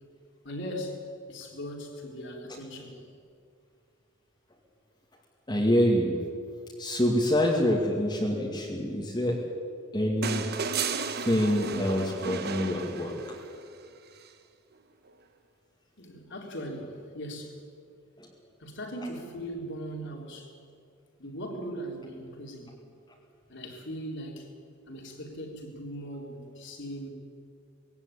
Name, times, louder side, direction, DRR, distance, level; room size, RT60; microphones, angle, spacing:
voice 1, 0.4-3.0 16.0-17.6 18.6-20.5 21.2-22.8 23.5-24.5 24.9-27.1, equal, 55° left, 3.8 m, -39 dB
voice 2, 5.5-6.2 6.8-9.4 9.9-10.5 11.2-13.4 18.2-18.3, equal, 20° left, 2.4 m, -26 dB
sound 1, 10.2-13.6 15.1-15.2, right 5 dB, 50° right, 1.3 m, -33 dB
19.5 x 17.0 x 10.0 m
head